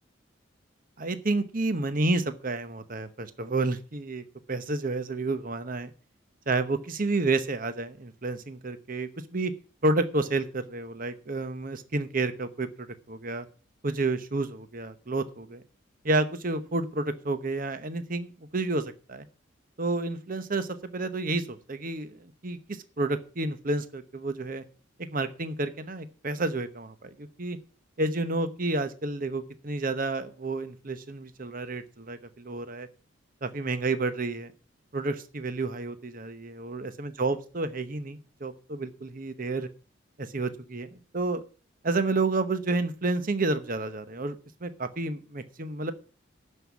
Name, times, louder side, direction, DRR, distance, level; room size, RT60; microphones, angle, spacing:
voice 1, 1.0-5.9 6.5-9.5 9.8-13.5 13.8-15.6 16.0-19.2 19.8-24.6 25.1-27.6 28.0-32.9 33.4-34.5 34.9-39.7 40.2-41.4 41.8-44.4 44.6-45.9, right 2 dB, 45° right, 11 dB, 1.0 m, -30 dB
12.5 x 5.6 x 8.3 m, 0.37 s
head